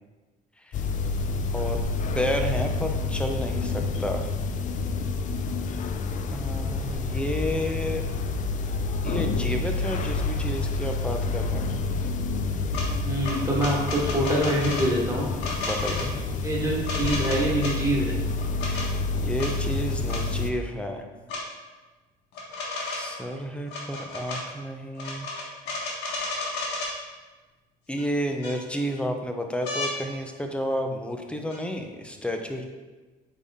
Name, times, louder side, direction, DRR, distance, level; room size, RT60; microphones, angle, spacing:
sound 1, 0.7-20.5, left 3 dB, 50° left, 0.5 m, -28 dB
voice 1, 2.1-4.3 6.3-8.0 9.0-11.8 15.6-16.2 18.6-21.1 22.8-25.3 27.9-32.6, equal, 5° left, 4 dB, 0.7 m, -31 dB
sound 2, 12.7-12.9 13.2-14.9 15.4-16.1 16.8-17.7 18.4-18.9 19.4-19.5 20.1-20.2 21.3-21.4 22.3-23.2 23.7-24.4 24.9-26.9 28.0-28.1 28.4-29.0 29.6-29.9 31.5-31.6, left 3 dB, 85° left, 1.7 m, -32 dB
voice 2, 13.0-15.3 16.4-18.2, right 1 dB, 20° right, -4 dB, 1.6 m, -25 dB
8.1 x 3.7 x 3.6 m, 1.3 s
cardioid pair, 110°, 17 cm